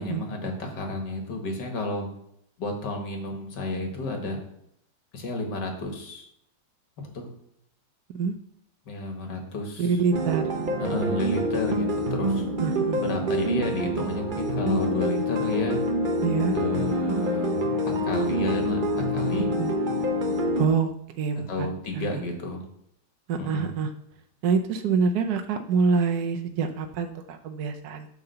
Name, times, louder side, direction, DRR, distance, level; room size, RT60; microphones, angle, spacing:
voice 1, 0.0-2.1 2.6-4.4 5.1-6.3 7.1-7.3 8.9-10.0 10.8-12.5 13.0-15.8 16.5-19.5 21.5-22.6 23.4-23.7, left 2 dB, 75° left, 3 dB, 2.2 m, -31 dB
voice 2, 9.8-10.4 12.6-13.0 16.2-16.6 19.6-19.8 20.6-21.7 21.9-22.1 23.3-23.9 24.4-28.1, right 5 dB, 65° right, 6 dB, 1.1 m, -26 dB
sound 1, 10.1-20.7, equal, 40° right, 0.8 m, -26 dB
8.8 x 3.8 x 6.7 m, 0.74 s
omnidirectional pair, 1.9 m